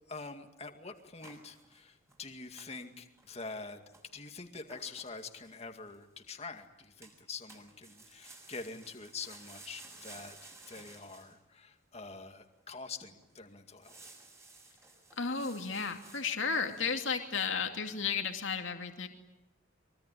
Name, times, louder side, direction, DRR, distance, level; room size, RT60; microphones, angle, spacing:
voice 1, 0.1-3.8 4.1-10.4 10.7-13.9, left 4 dB, 30° left, 6 dB, 2.2 m, -45 dB
sound 1, 1.0-2.2 2.6-2.8 3.2-3.6 3.9-6.1 7.0-7.2 7.5-11.4 11.9-12.0 12.6-12.7 13.0-13.3 13.7-17.1, right 3 dB, 15° right, 6.4 m, -55 dB
voice 2, 15.1-19.1, left 5 dB, 80° left, 4 dB, 2.5 m, -33 dB
24.0 x 24.0 x 9.9 m, 0.91 s
head